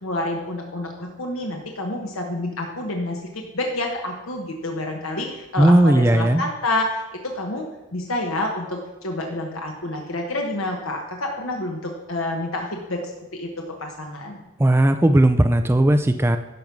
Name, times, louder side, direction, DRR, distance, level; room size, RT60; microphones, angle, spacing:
voice 1, 0.0-7.7 7.9-13.0 13.3-14.4, left 1 dB, 70° left, 1 dB, 1.2 m, -28 dB
voice 2, 5.6-6.4 14.6-16.4, right 1 dB, 10° right, 8 dB, 0.3 m, -16 dB
12.0 x 5.4 x 6.0 m, 1.0 s
head